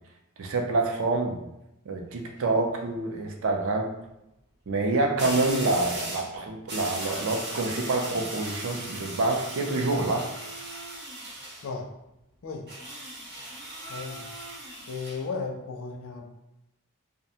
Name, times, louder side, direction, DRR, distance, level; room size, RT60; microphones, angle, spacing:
voice 1, 0.4-1.4 1.9-3.9 4.7-10.2, right 2 dB, 65° right, 3 dB, 0.4 m, -27 dB
sound 1, 2.0-2.4 5.2-6.3 6.7-11.7 12.7-15.2, right 1 dB, 50° right, 0.8 m, -38 dB
voice 2, 13.9-14.3 14.9-16.3, left 4 dB, 65° left, 3 dB, 0.4 m, -35 dB
2.4 x 2.1 x 2.8 m, 0.88 s
head